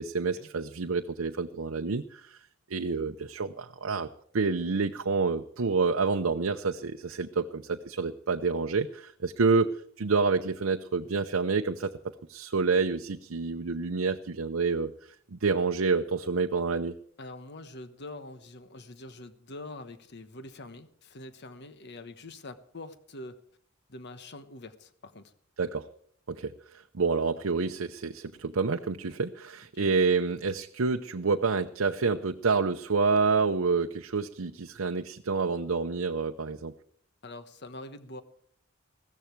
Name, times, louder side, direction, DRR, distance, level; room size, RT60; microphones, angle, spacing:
voice 1, 0.0-2.4 2.7-4.1 4.3-11.9 12.3-14.9 15.3-16.9 25.6-25.9 26.3-36.7, right 4 dB, 75° right, 6 dB, 0.7 m, -28 dB
voice 2, 17.2-23.4 23.9-25.3 29.7-29.9 37.2-38.2, left 2 dB, 55° left, 11 dB, 1.2 m, -44 dB
15.5 x 14.0 x 4.6 m, 0.64 s
head